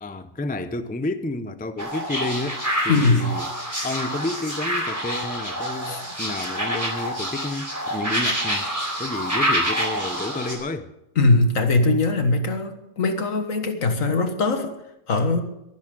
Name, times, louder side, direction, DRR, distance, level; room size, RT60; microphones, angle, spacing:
voice 1, 0.0-3.5 3.8-8.7 9.0-10.9, left 2 dB, 10° left, 0.4 m, -30 dB
sound 1, 1.8-10.5, equal, 10° right, 3.8 m, -27 dB
voice 2, 2.9-3.3 5.9-6.1 11.2-14.7 15.1-15.4, left 2 dB, 70° left, 1.9 m, -21 dB
23.0 x 10.5 x 3.9 m
omnidirectional pair, 1.4 m